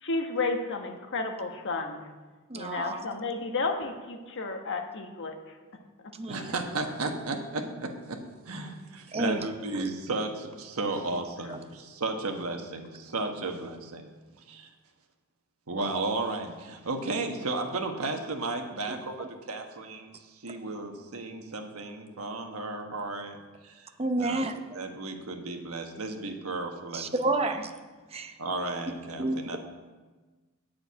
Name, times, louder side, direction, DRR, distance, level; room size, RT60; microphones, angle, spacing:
voice 1, 0.0-2.1 2.5-5.6 6.0-6.4, left 3 dB, 60° left, 1.1 m, -32 dB
voice 2, 2.5-3.0 6.1-6.5 8.6-8.7 9.1-9.5 9.8-9.9 11.5-11.6 18.9-19.0 24.0-24.8 26.9-27.7 28.1-28.3 29.1-29.6, right 2 dB, 30° right, 0.7 m, -30 dB
voice 3, 6.3-14.1 14.5-14.7 15.7-23.9 24.2-24.4 24.7-27.1 27.4-27.5 28.4-29.6, right 2 dB, 80° right, 1.3 m, -34 dB
8.9 x 6.4 x 8.5 m
head